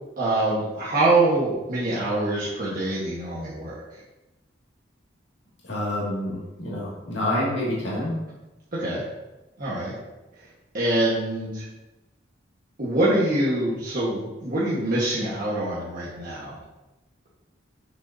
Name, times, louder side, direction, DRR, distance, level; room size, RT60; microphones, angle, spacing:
voice 1, 0.2-4.0 8.7-9.0 9.6-9.9 10.7-11.7 12.8-16.6, right 2 dB, 50° right, -8 dB, 1.4 m, -24 dB
voice 2, 5.6-8.1, left 1 dB, 70° left, -6 dB, 2.1 m, -27 dB
6.4 x 6.1 x 2.7 m, 1.0 s
head